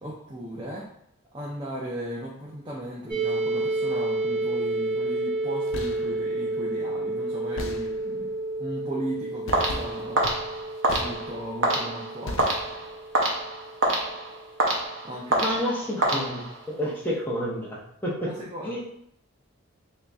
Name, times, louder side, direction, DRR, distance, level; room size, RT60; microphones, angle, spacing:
voice 1, 0.0-0.9 1.3-10.3 11.0-12.5 15.0-15.6 18.3-18.8, right 1 dB, 20° right, -5 dB, 0.5 m, -36 dB
sound 1, 3.1-14.8, right 2 dB, 45° right, 1.1 m, -31 dB
sound 2, 5.5-6.2 7.6-8.3 9.5-11.6 12.3-13.0, left 2 dB, 70° left, 0.4 m, -38 dB
sound 3, 9.5-16.8, right 1 dB, 60° right, 0.7 m, -27 dB
voice 2, 15.4-16.4 16.8-18.3 18.6-18.8, equal, 10° left, -5 dB, 0.8 m, -29 dB
2.9 x 2.7 x 3.4 m, 0.73 s
head